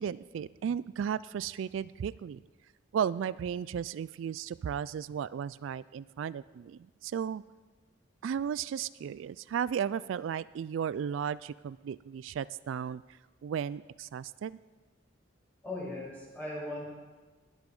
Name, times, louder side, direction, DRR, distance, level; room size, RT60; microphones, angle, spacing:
voice 1, 0.0-2.4 2.9-7.4 8.2-13.0 13.4-14.6, right 8 dB, 75° right, 18 dB, 0.3 m, -35 dB
voice 2, 15.6-16.9, left 1 dB, 10° left, -6 dB, 5.7 m, -38 dB
21.0 x 8.2 x 5.4 m, 1.3 s
head